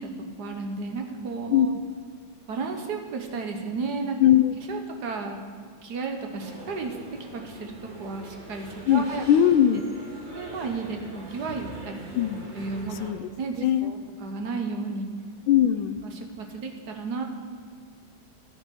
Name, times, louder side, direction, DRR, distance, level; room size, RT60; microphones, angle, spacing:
voice 1, 0.4-1.7 2.5-4.2 4.7-5.5 5.8-7.0 7.3-9.2 10.3-12.3 12.5-12.9 13.4-15.1 16.0-17.2, right 4 dB, 55° right, 4 dB, 1.5 m, -33 dB
voice 2, 4.2-4.5 8.9-9.8 12.1-12.5 13.0-13.3 13.6-13.9 15.5-16.0, left 10 dB, 80° left, 11 dB, 1.3 m, -20 dB
sound 1, 6.4-13.1, right 1 dB, 25° right, 1.5 m, -43 dB
11.5 x 8.8 x 6.1 m, 2.1 s
omnidirectional pair, 2.2 m